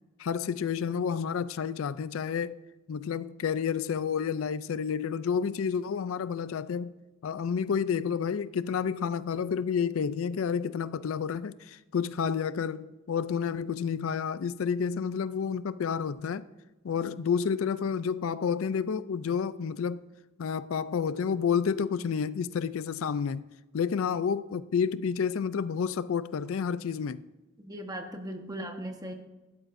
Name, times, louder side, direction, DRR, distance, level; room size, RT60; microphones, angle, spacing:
voice 1, 0.2-2.6 2.9-6.9 7.2-16.5 16.8-20.0 20.4-23.4 23.7-27.2, left 6 dB, 70° left, 0.4 m, -30 dB
voice 2, 27.6-29.1, right 1 dB, 20° right, 1.3 m, -38 dB
15.5 x 12.0 x 2.6 m
head